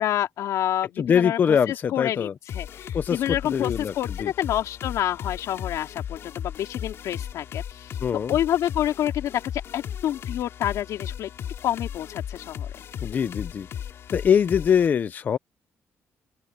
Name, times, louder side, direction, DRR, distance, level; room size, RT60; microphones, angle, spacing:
voice 1, 0.0-2.3 2.5-7.9 8.3-9.4 9.7-11.3 11.6-12.7, left 11 dB, 85° left, 3.2 m, -28 dB
voice 2, 1.0-2.3 2.9-3.9 4.2-4.3 8.0-8.4 13.0-13.7 14.1-15.4, left 7 dB, 35° left, 0.5 m, -23 dB
sound 1, 2.5-14.9, left 9 dB, 55° left, 3.5 m, -36 dB
open air
cardioid pair, 175°, 5 cm